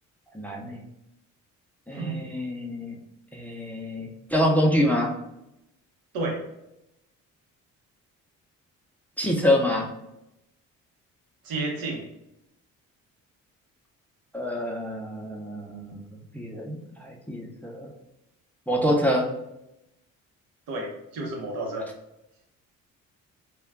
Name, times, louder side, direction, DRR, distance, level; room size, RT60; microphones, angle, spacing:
voice 1, 0.3-0.8 1.9-3.0 3.3-5.1 9.2-9.9 14.3-17.9 18.7-19.3, equal, 5° left, 0 dB, 0.5 m, -26 dB
voice 2, 11.4-12.0 20.7-21.9, right 2 dB, 85° right, 0 dB, 0.8 m, -31 dB
2.2 x 2.1 x 3.4 m, 0.86 s
supercardioid pair, 70°, 34 cm